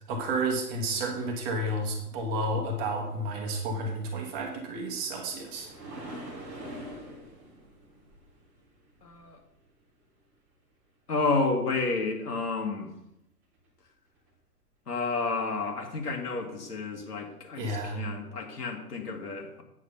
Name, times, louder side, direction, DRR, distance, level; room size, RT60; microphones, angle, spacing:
voice 1, 0.1-5.7 17.6-18.0, right 1 dB, 20° right, 2 dB, 1.1 m, -31 dB
sound 1, 4.7-9.7 13.5-13.7 14.3-14.4, right 1 dB, 5° right, 0.5 m, -44 dB
voice 2, 9.0-9.4 11.1-12.9 14.9-19.6, left 3 dB, 70° left, 3 dB, 2.1 m, -30 dB
8.5 x 6.2 x 5.6 m, 0.84 s
figure-of-eight pair, 130°, 48 cm